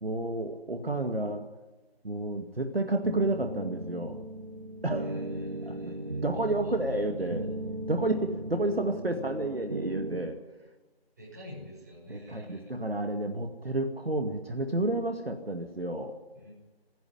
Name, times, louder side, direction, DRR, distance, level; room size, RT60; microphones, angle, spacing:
voice 1, 0.0-1.5 2.0-4.2 4.8-5.2 5.7-6.0 6.2-7.5 7.9-10.4 12.1-16.2, right 2 dB, 70° right, 5 dB, 2.3 m, -31 dB
sound 1, 3.0-10.2, right 1 dB, 35° right, 1.1 m, -37 dB
voice 2, 4.9-7.0 11.2-12.7 16.3-16.5, left 2 dB, 15° right, -5 dB, 6.3 m, -47 dB
28.0 x 11.0 x 10.0 m, 1.2 s
figure-of-eight pair, 170°, 31 cm